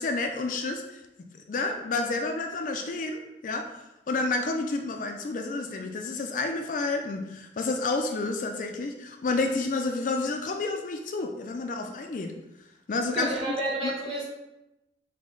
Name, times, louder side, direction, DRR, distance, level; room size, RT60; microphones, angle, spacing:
voice 1, 0.0-3.7 4.1-12.3 12.9-13.5 13.8-13.9, left 3 dB, 45° left, 4 dB, 0.3 m, -30 dB
voice 2, 13.1-14.2, right 1 dB, 30° right, -5 dB, 1.2 m, -30 dB
5.0 x 2.1 x 3.7 m, 0.92 s
head